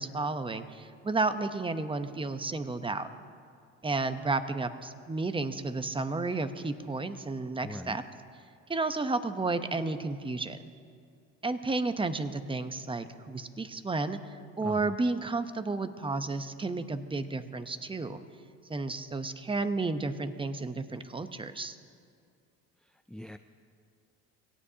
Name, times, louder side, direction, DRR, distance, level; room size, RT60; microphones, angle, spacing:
voice 1, 0.0-3.1 3.8-8.0 8.7-10.6 11.4-18.2 18.7-21.8, right 3 dB, 15° right, 10 dB, 0.9 m, -32 dB
voice 2, 7.6-8.0 14.6-15.0 22.8-23.4, left 1 dB, ahead, 8 dB, 0.4 m, -42 dB
24.0 x 17.5 x 2.9 m, 2.3 s
supercardioid pair, 95°, 34 cm